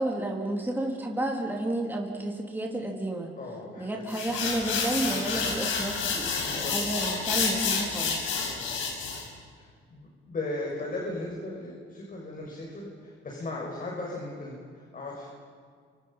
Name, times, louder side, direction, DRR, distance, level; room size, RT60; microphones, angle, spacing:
voice 1, 0.0-3.3 3.8-8.2, right 1 dB, 10° right, -1 dB, 3.7 m, -31 dB
voice 2, 3.4-3.8 5.1-5.6 6.3-6.7 8.5-8.7 9.0-9.1 9.5-15.3, left 2 dB, 45° left, -2 dB, 6.7 m, -37 dB
sound 1, 4.1-9.3, left 5 dB, 90° left, 5.7 m, -29 dB
29.5 x 26.5 x 5.8 m, 2.1 s
cardioid pair, 90°, 20 cm